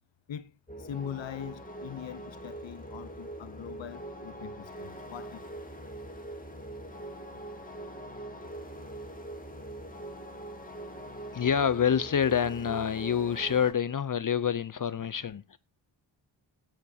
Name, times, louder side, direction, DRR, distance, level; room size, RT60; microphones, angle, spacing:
voice 1, 0.3-5.4, left 10 dB, 70° left, 0.8 m, -42 dB
sound 1, 0.7-13.7, right 1 dB, 15° left, 2.5 m, -42 dB
voice 2, 11.3-15.6, left 8 dB, 40° left, 0.6 m, -27 dB
14.5 x 9.4 x 2.7 m
cardioid pair, 55°, 48 cm